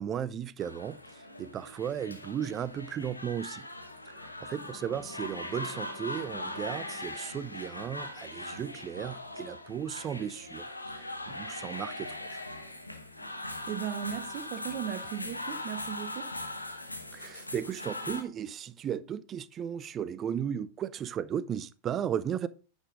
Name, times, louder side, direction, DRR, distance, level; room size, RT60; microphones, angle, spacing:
voice 1, 0.0-3.7 4.1-10.7 10.9-12.4 17.1-22.5, right 9 dB, 30° right, 0.5 m, -35 dB
sound 1, 0.6-18.2, left 1 dB, 85° left, 1.0 m, -40 dB
sound 2, 4.5-7.0, left 10 dB, 25° left, 0.8 m, -50 dB
voice 2, 13.7-16.3, right 10 dB, 45° right, 1.1 m, -37 dB
9.7 x 5.4 x 3.8 m
figure-of-eight pair, 90°, 0 cm